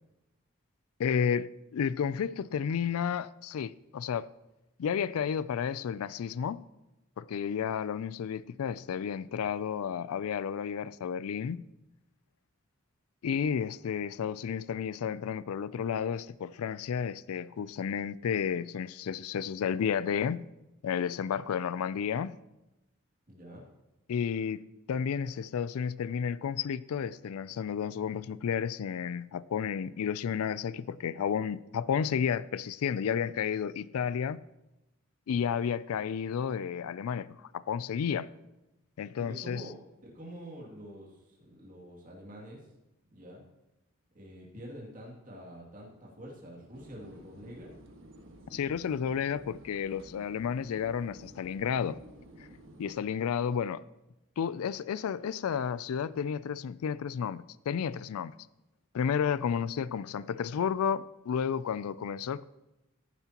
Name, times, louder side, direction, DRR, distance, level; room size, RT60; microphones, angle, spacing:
voice 1, 1.0-4.3 4.8-6.6 7.2-11.6 13.2-20.4 20.8-22.4 24.1-24.6 24.9-34.4 35.3-38.3 39.0-39.6 48.5-52.0 52.8-53.8 54.4-58.3 58.9-62.4, left 7 dB, 85° left, 0.4 m, -32 dB
voice 2, 23.3-23.6 39.2-42.6 43.1-43.4 44.1-47.7, equal, 35° right, 2.5 m, -47 dB
sound 1, 46.7-53.0, right 1 dB, 60° right, 1.5 m, -52 dB
14.5 x 10.5 x 2.9 m
head